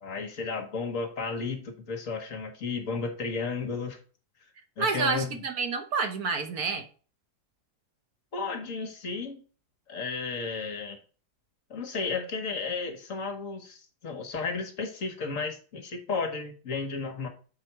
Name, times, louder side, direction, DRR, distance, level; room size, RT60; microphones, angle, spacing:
voice 1, 0.0-4.0 4.8-5.4 8.3-9.4 9.9-11.0 11.7-17.3, left 4 dB, 55° left, 1.5 m, -33 dB
voice 2, 4.8-6.9, right 4 dB, 65° right, 1.5 m, -29 dB
6.6 x 4.2 x 4.5 m
omnidirectional pair, 1.8 m